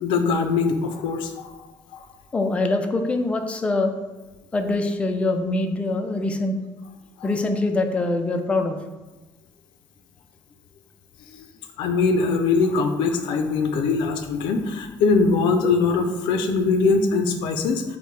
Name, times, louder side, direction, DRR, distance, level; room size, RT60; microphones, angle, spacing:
voice 1, 0.0-1.5 1.9-2.0 11.3-11.4 11.8-17.8, left 4 dB, 80° left, 6 dB, 0.4 m, -22 dB
voice 2, 2.3-3.9 4.5-6.6 7.2-8.8, left 2 dB, 15° left, 5 dB, 0.3 m, -23 dB
5.6 x 2.1 x 3.2 m, 1.1 s
cardioid pair, 130°, 8 cm